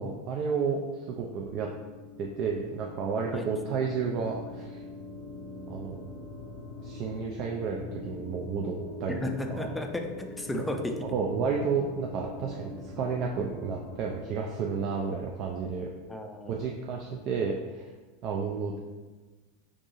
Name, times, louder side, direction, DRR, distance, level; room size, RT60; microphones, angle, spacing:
voice 1, 0.0-1.7 2.2-4.8 5.7-6.0 6.8-9.7 10.5-10.6 11.0-15.9 16.5-17.9 18.2-18.8, right 5 dB, 50° right, 0 dB, 0.4 m, -31 dB
sound 1, 1.1-14.7, left 3 dB, 75° left, 0.8 m, -43 dB
voice 2, 9.1-10.9 16.1-16.6, left 2 dB, 10° left, 3 dB, 0.4 m, -34 dB
4.6 x 2.6 x 2.6 m, 1.2 s
hypercardioid pair, 95°, 0 cm